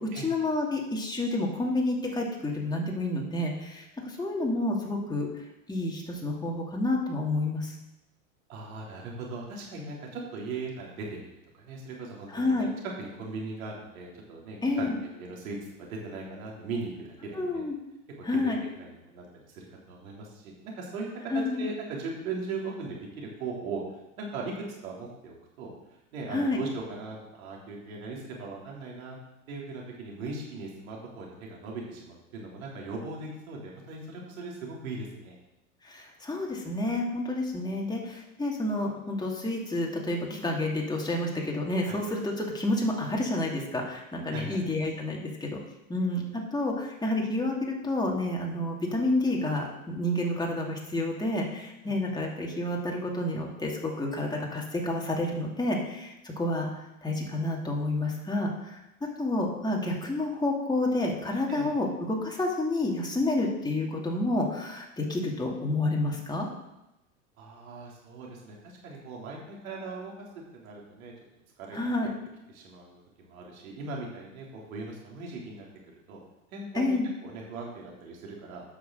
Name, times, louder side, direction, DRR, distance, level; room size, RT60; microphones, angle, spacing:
voice 1, 0.0-5.3 5.7-7.7 12.3-12.7 14.6-15.0 17.3-17.7 18.2-18.6 21.3-21.6 26.3-26.6 35.8-45.6 45.9-58.8 59.2-66.5 71.7-72.1 76.7-77.1, left 2 dB, 10° left, -1 dB, 2.5 m, -29 dB
voice 2, 8.5-12.7 13.0-14.9 15.2-17.6 18.4-21.3 21.6-23.8 24.2-25.7 26.1-29.2 29.5-35.4 41.8-42.0 44.3-44.6 51.8-52.1 61.5-61.7 67.4-70.1 70.5-71.1 71.6-71.8 72.5-75.7 76.1-76.2 76.5-77.0 77.2-78.6, right 3 dB, 75° right, -2 dB, 3.4 m, -39 dB
9.4 x 6.2 x 6.4 m, 0.93 s
hypercardioid pair, 100°, 42 cm